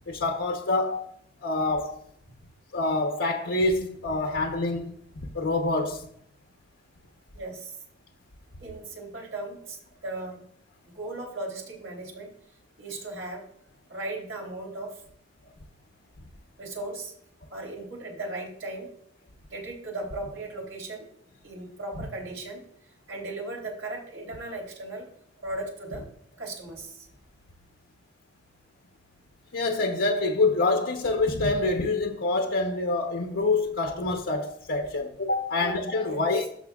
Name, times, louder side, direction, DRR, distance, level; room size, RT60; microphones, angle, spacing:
voice 1, 0.1-2.0 2.7-4.9 5.3-6.1 29.5-36.5, left 2 dB, 80° left, 0.9 m, -26 dB
voice 2, 7.3-7.8 8.6-10.4 10.9-12.3 12.8-13.4 13.9-15.0 16.6-17.1 17.5-18.9 19.5-21.1 21.4-22.6 23.1-25.1 25.4-26.0 26.4-27.1 35.6-35.8 36.0-36.5, right 2 dB, 80° right, 3.4 m, -37 dB
13.5 x 5.9 x 2.4 m
head